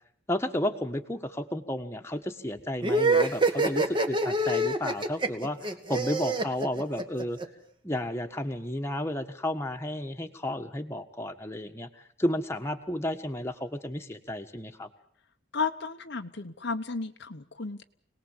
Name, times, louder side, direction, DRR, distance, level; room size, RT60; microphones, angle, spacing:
voice 1, 0.3-7.4 7.8-11.9 12.2-14.9, left 1 dB, 10° left, 4 dB, 1.5 m, -32 dB
sound 1, 2.8-7.4, right 2 dB, 25° right, 1.7 m, -26 dB
voice 2, 15.5-17.8, left 4 dB, 55° left, 7 dB, 0.9 m, -33 dB
27.0 x 19.5 x 7.4 m, 0.62 s
head